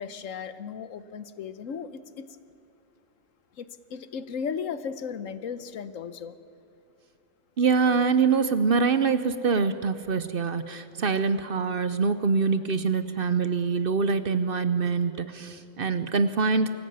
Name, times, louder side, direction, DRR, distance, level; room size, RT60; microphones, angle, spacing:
voice 1, 0.0-2.3 3.6-6.5, left 6 dB, 75° left, 13 dB, 1.3 m, -36 dB
voice 2, 7.6-16.7, right 5 dB, 50° right, 12 dB, 0.8 m, -24 dB
24.0 x 14.0 x 9.4 m, 2.5 s
omnidirectional pair, 1.4 m